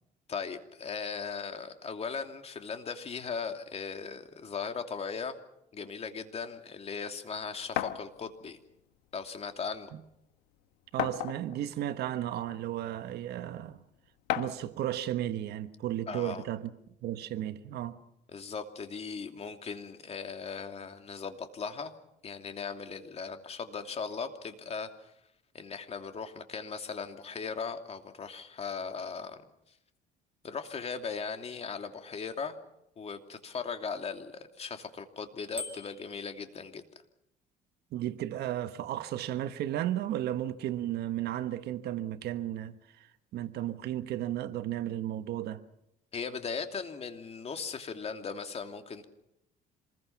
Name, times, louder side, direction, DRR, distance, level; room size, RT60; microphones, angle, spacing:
voice 1, 0.3-5.3 5.7-8.6 9.1-9.9 16.1-16.4 18.3-21.9 22.2-25.1 25.5-29.4 30.4-32.6 33.0-36.8 46.1-49.0, left 5 dB, 35° left, 2.8 m, -38 dB
sound 1, 7.8-8.0 9.2-9.3 9.7-9.8 11.0-11.6 12.5-12.6 14.3-14.7, left 12 dB, 90° left, 1.4 m, -32 dB
voice 2, 10.9-13.8 14.3-16.7 17.0-18.0 37.9-43.1 43.3-45.6, right 12 dB, 75° right, 1.4 m, -34 dB
Bicycle bell, 35.6-36.2, left 2 dB, 10° right, 4.7 m, -41 dB
27.0 x 21.0 x 6.0 m
cardioid pair, 110°, 17 cm